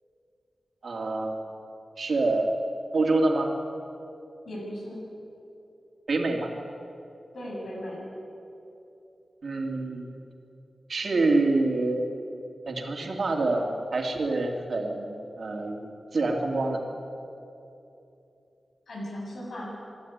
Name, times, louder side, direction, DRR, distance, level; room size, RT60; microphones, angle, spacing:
voice 1, 0.8-1.5 2.0-2.5 2.9-3.5 6.1-6.5 9.4-10.1 10.9-12.2 12.7-16.8, right 2 dB, 60° right, 2 dB, 2.6 m, -26 dB
voice 2, 4.4-5.0 7.3-8.0 18.9-19.7, equal, 65° left, -4 dB, 6.8 m, -37 dB
27.0 x 11.5 x 9.5 m, 2.8 s
wide cardioid pair, 100°, 0 cm